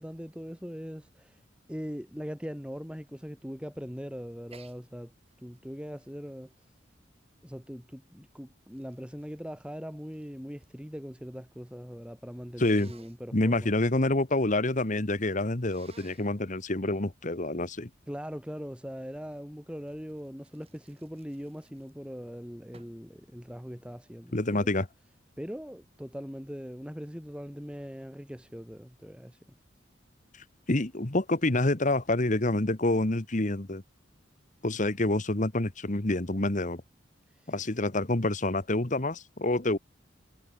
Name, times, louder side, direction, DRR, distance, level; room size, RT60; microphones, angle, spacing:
voice 1, 0.0-1.4 1.7-5.1 5.4-6.5 7.4-13.8 18.1-24.7 25.4-29.4 37.3-37.7, equal, 5° right, 4.8 m, -41 dB
Sneeze, 4.5-4.8 5.3-7.6 8.3-10.8 11.1-11.7 12.5-13.2 15.6-16.4 19.9-22.2 22.7-23.1, right 4 dB, 30° right, 6.8 m, -59 dB
voice 2, 12.6-12.9 13.3-17.9 24.3-24.9 30.7-33.8 34.6-36.8 37.5-39.8, left 2 dB, 40° left, 1.4 m, -27 dB
head